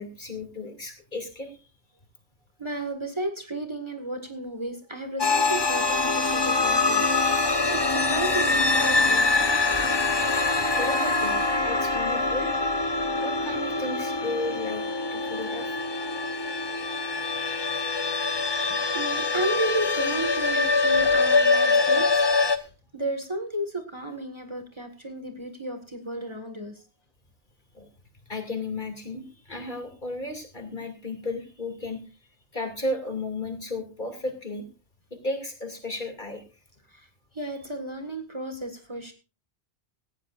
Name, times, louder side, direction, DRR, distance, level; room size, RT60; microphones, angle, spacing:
voice 1, 0.0-1.6 9.4-10.0 10.5-12.5 13.2-14.8 15.1-15.8 17.3-17.7 27.7-27.9 28.3-32.0 32.5-34.6 35.1-36.4, left 2 dB, 45° left, 5 dB, 2.8 m, -34 dB
voice 2, 2.6-9.2 9.8-10.0 18.9-26.8 36.9-37.1 37.3-39.1, right 1 dB, 25° right, 5 dB, 1.8 m, -33 dB
sound 1, 5.2-22.6, left 3 dB, 25° left, 0.8 m, -24 dB
18.5 x 15.0 x 2.5 m, 0.31 s
omnidirectional pair, 1.1 m